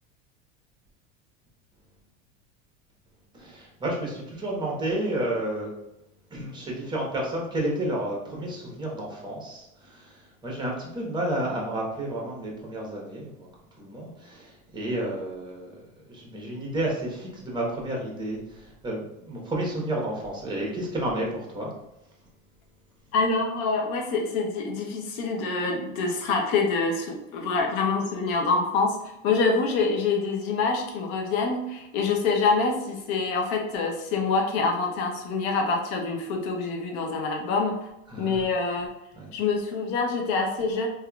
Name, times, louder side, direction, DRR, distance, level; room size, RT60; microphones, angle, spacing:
voice 1, 3.3-5.7 6.3-9.6 9.9-10.0 10.4-13.5 13.8-15.7 16.1-18.4 18.8-21.7 38.1-38.4 39.2-39.3, right 1 dB, 10° right, -2 dB, 1.1 m, -31 dB
voice 2, 23.1-37.8 38.2-38.9 39.3-40.9, left 4 dB, 60° left, 2 dB, 0.9 m, -26 dB
3.5 x 2.9 x 2.3 m, 0.88 s
hypercardioid pair, 105°, 38 cm